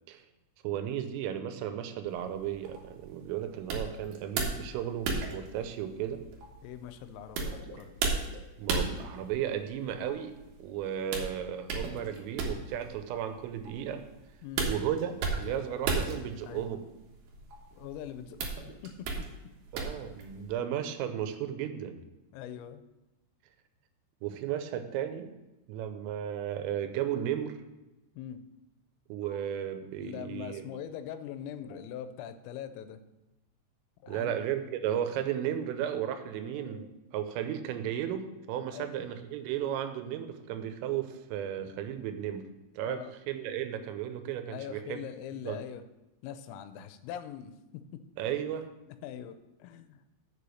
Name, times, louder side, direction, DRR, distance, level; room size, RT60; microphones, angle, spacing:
voice 1, 0.6-6.2 8.6-10.3 10.6-14.0 14.7-16.8 19.7-22.0 24.2-25.3 25.7-27.6 29.1-30.8 34.1-36.8 37.1-42.5 42.8-43.0 43.3-45.0 45.5-45.6 48.2-48.7, right 10 dB, 85° right, 8 dB, 3.3 m, -34 dB
sound 1, 2.1-20.5, right 4 dB, 70° right, 2.5 m, -36 dB
voice 2, 6.6-8.0 14.4-14.7 16.4-16.7 17.7-19.3 22.3-22.8 28.2-28.4 30.0-33.0 34.1-34.4 38.7-38.9 42.9-43.1 44.5-45.8 46.2-47.5 49.0-50.0, left 9 dB, 90° left, 10 dB, 3.3 m, -42 dB
sound 2, 29.2-29.4 31.6-31.8 34.0-34.3 36.4-36.8, left 4 dB, 65° left, 3.9 m, -53 dB
6.9 x 6.9 x 6.3 m, 1.0 s
omnidirectional pair, 5.9 m